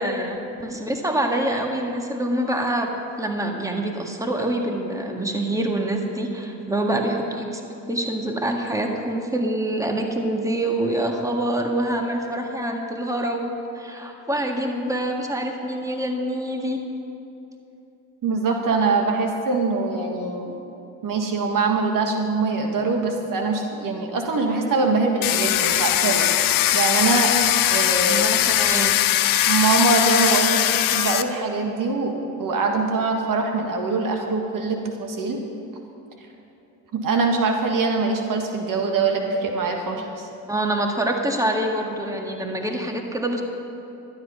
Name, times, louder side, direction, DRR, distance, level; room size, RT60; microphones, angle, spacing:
voice 1, 0.0-2.9 3.2-7.6 7.9-16.8 28.1-29.0 40.5-43.4, right 1 dB, 10° right, 2 dB, 1.7 m, -25 dB
voice 2, 18.2-20.5 21.0-26.3 26.7-27.3 27.7-28.3 29.4-32.1 32.4-35.4 36.9-40.3, right 3 dB, 55° right, 3 dB, 1.6 m, -23 dB
Domestic sounds home sounds, 25.2-31.2, left 13 dB, 60° left, 0.7 m, -20 dB
12.0 x 10.5 x 5.5 m, 2.9 s
supercardioid pair, 65°, 39 cm